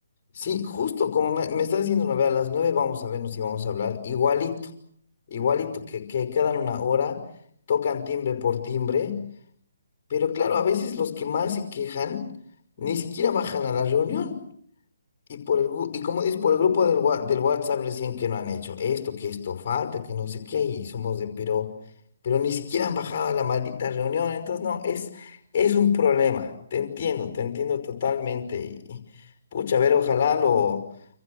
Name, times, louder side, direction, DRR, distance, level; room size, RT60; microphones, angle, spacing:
voice 1, 0.3-4.7 5.3-7.2 7.7-9.2 10.1-12.2 12.8-14.4 15.3-21.7 22.2-29.0 29.5-30.8, left 7 dB, 40° left, 7 dB, 5.6 m, -25 dB
30.0 x 27.0 x 6.5 m, 0.63 s
figure-of-eight pair, 140°, 0 cm